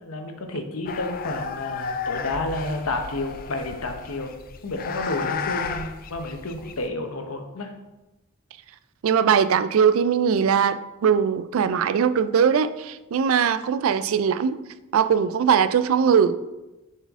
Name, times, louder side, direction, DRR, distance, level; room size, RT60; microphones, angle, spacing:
voice 1, 0.0-4.3 4.6-7.7, left 2 dB, 90° left, 5 dB, 0.8 m, -30 dB
sound 1, 0.9-6.9, left 5 dB, 40° left, 0.4 m, -33 dB
voice 2, 9.0-14.6 14.9-16.3, right 7 dB, 75° right, 12 dB, 0.3 m, -20 dB
6.8 x 4.4 x 3.6 m, 1.0 s
head